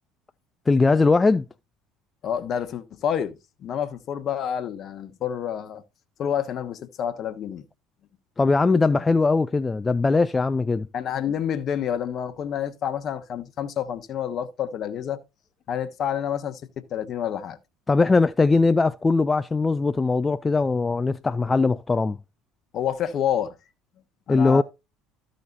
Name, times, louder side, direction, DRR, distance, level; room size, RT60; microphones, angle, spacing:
voice 1, 0.7-1.4 8.4-10.9 17.9-22.2 24.3-24.6, left 3 dB, 20° left, 0.4 m, -20 dB
voice 2, 2.2-3.3 3.6-5.8 6.2-7.6 10.9-15.2 15.7-16.6 16.9-17.6 22.7-23.5 24.3-24.6, left 9 dB, 50° left, 1.1 m, -28 dB
13.5 x 6.3 x 2.7 m
hypercardioid pair, 70°, 0 cm